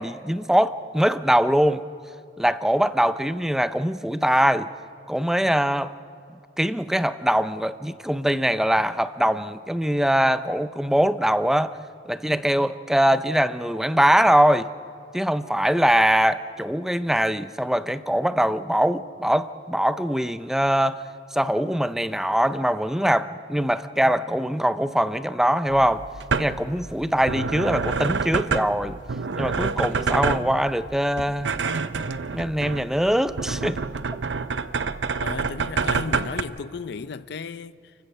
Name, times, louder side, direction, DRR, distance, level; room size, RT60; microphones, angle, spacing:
voice 1, 0.0-1.8 2.4-4.7 5.1-5.9 6.6-11.8 12.1-14.7 15.1-21.0 21.3-26.0 26.4-29.0 29.4-31.6 32.3-33.8, equal, 5° right, 0.5 m, -22 dB
sound 1, 25.7-36.4, right 4 dB, 75° right, 0.7 m, -28 dB
voice 2, 35.2-37.9, left 5 dB, 65° left, 0.5 m, -34 dB
29.5 x 15.5 x 6.7 m
head